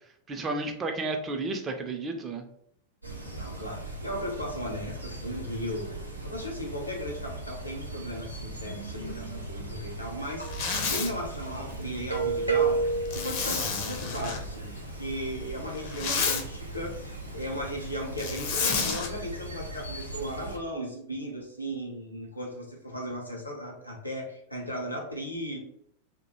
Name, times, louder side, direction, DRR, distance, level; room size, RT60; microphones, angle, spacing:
voice 1, 0.3-2.4, right 2 dB, 20° right, 4 dB, 0.4 m, -32 dB
sound 1, 3.0-20.6, right 3 dB, 85° right, 0.4 m, -35 dB
voice 2, 3.3-5.9 6.3-10.5 10.9-25.6, equal, 85° left, 0 dB, 0.6 m, -36 dB
Zipper (clothing), 10.4-11.1 13.1-14.4 15.7-16.4 18.2-19.1, left 5 dB, 45° left, 0.5 m, -30 dB
2.2 x 2.1 x 2.9 m, 0.70 s
figure-of-eight pair, 90°, 0 cm